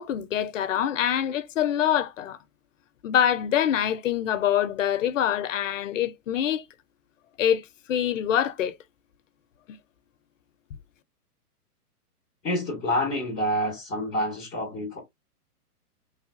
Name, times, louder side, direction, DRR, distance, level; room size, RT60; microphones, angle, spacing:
voice 1, 0.0-2.4 3.0-6.6 7.4-8.7 9.7-9.8, left 10 dB, 55° left, 0.5 m, -25 dB
voice 2, 12.4-15.0, left 1 dB, ahead, 0.4 m, -27 dB
3.2 x 2.2 x 2.5 m
hypercardioid pair, 140°, 47 cm